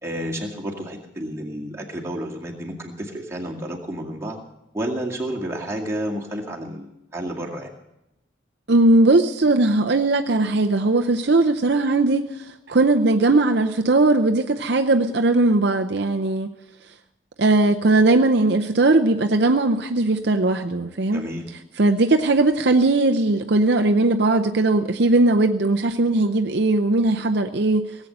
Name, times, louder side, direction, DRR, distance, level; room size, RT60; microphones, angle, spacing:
voice 1, 0.0-4.4 4.7-7.7 21.1-21.5, right 1 dB, 15° right, -2 dB, 2.1 m, -30 dB
voice 2, 8.7-16.5 17.4-21.2 21.8-28.0, right 2 dB, 60° right, 5 dB, 0.7 m, -19 dB
18.0 x 8.3 x 7.8 m, 0.91 s
head